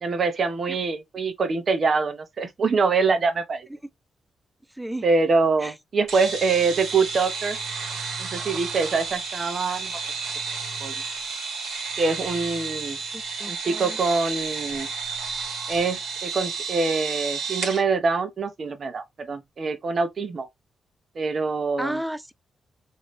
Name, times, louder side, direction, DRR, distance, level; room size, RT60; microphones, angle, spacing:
voice 1, 0.0-3.7 5.0-7.6 8.2-10.0 10.8-10.9 12.0-13.0 13.5-14.9 15.7-20.5 21.2-22.0, right 4 dB, 50° right, 0.8 m, -24 dB
sound 1, 6.1-17.8, right 5 dB, 85° right, 1.2 m, -32 dB
voice 2, 13.1-14.0 21.8-22.3, right 1 dB, 5° right, 0.4 m, -33 dB
3.1 x 2.7 x 3.1 m
cardioid pair, 85°, 0 cm